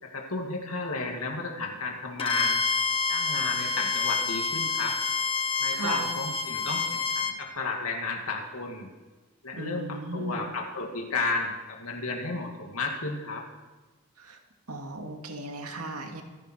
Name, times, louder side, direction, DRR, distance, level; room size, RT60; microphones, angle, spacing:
voice 1, 0.0-2.6 3.1-5.0 5.6-8.9 9.4-13.4, left 3 dB, 80° left, 1 dB, 2.4 m, -33 dB
Bowed string instrument, 2.2-7.4, left 4 dB, 25° left, 1.3 m, -28 dB
voice 2, 5.7-6.1 9.5-10.5 14.2-14.4 14.7-16.2, right 2 dB, 85° right, 3 dB, 2.4 m, -36 dB
25.5 x 11.0 x 4.6 m, 1.3 s
head